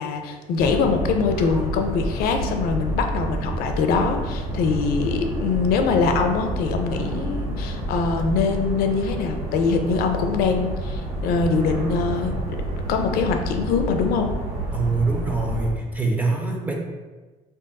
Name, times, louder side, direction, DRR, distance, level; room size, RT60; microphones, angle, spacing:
voice 1, 0.0-12.6 12.9-14.3, left 5 dB, 90° left, 5 dB, 0.4 m, -23 dB
sound 1, 0.6-15.7, right 1 dB, 85° right, 0.9 m, -29 dB
voice 2, 14.7-16.7, right 3 dB, 10° right, 0 dB, 0.3 m, -24 dB
3.6 x 2.7 x 2.2 m, 1.3 s
cardioid pair, 175°, 15 cm